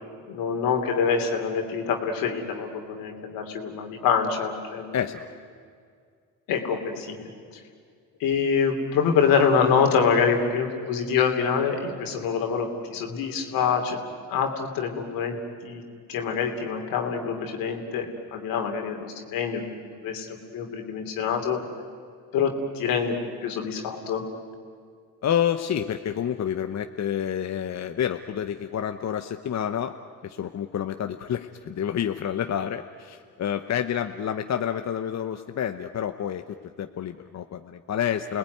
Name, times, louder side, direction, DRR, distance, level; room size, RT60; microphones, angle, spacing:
voice 1, 0.3-5.0 6.5-7.3 8.2-14.0 14.3-15.4 15.6-15.8 16.1-19.6 20.0-21.6 22.3-23.1 23.4-24.2, left 6 dB, 80° left, 4 dB, 3.0 m, -25 dB
voice 2, 4.9-5.3 25.2-29.9 30.2-38.4, left 9 dB, 50° left, 7 dB, 1.0 m, -29 dB
29.5 x 19.0 x 9.4 m, 2.2 s
supercardioid pair, 65°, 34 cm